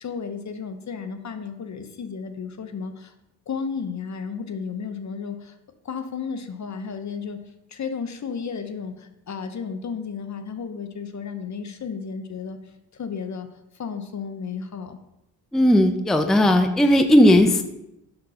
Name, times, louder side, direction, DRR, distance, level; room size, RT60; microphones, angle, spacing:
voice 1, 0.0-3.1 3.5-5.6 5.8-7.4 7.7-12.6 12.9-13.5 13.7-15.0, left 6 dB, 45° left, 8 dB, 0.8 m, -33 dB
voice 2, 15.5-17.6, left 1 dB, ahead, 6 dB, 0.5 m, -16 dB
5.8 x 3.9 x 5.6 m, 0.87 s
cardioid pair, 60°, 41 cm